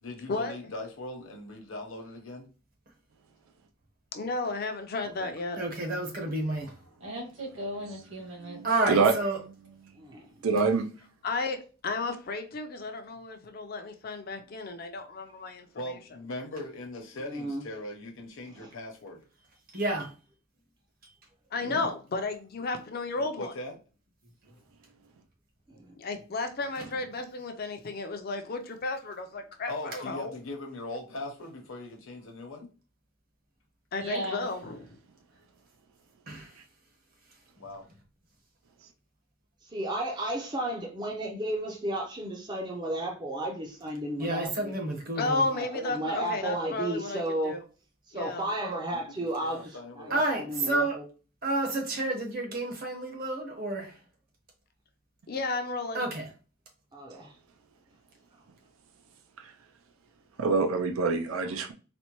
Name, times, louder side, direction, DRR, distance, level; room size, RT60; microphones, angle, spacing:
voice 1, 0.0-2.5 5.2-5.3 15.7-19.2 23.2-23.8 29.7-32.7 37.6-37.8 48.9-50.4, left 2 dB, 65° left, 0.8 m, -40 dB
voice 2, 4.1-5.6 11.2-16.0 21.5-23.5 26.0-30.3 33.9-34.8 45.2-47.6 48.1-48.5 55.3-56.0, left 3 dB, 45° left, 0.5 m, -33 dB
voice 3, 5.6-6.7 8.6-9.4 19.7-20.1 36.3-36.5 44.2-45.4 50.1-51.0 51.4-53.9 55.9-56.3, right 2 dB, 45° right, 0.9 m, -30 dB
voice 4, 7.0-8.6 24.4-24.5 34.0-34.5, equal, 60° right, 1.5 m, -36 dB
voice 5, 8.4-9.1 10.4-10.9 59.4-59.5 60.4-61.7, right 4 dB, 75° right, 0.5 m, -26 dB
voice 6, 10.0-10.5 17.3-17.6 18.6-18.7 21.6-21.8 39.6-44.7 45.5-47.6 48.1-51.0 56.9-57.3, right 1 dB, 20° right, 0.5 m, -33 dB
4.2 x 2.1 x 3.0 m
head